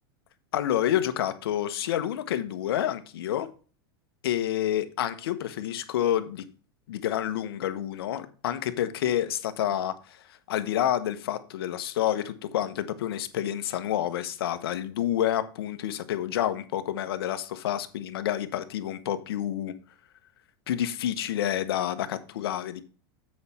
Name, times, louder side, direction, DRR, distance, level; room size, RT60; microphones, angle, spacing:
voice 1, 0.5-3.5 4.2-6.4 6.9-10.2 10.5-19.7 20.7-22.8, left 11 dB, 80° left, 1.0 m, -29 dB
7.9 x 5.4 x 4.3 m
supercardioid pair, 130°, 13 cm